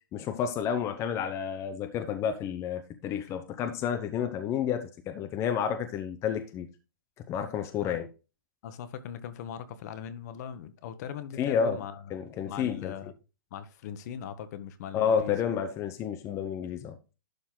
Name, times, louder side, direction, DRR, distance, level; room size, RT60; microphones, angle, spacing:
voice 1, 0.1-6.7 7.3-8.1 11.4-11.8 12.1-12.9 14.9-17.1, left 8 dB, 25° left, 0.9 m, -30 dB
voice 2, 8.6-12.0 12.4-13.1 13.5-15.4, left 8 dB, 50° left, 1.2 m, -40 dB
11.5 x 4.1 x 3.9 m
hypercardioid pair, 140°, 12 cm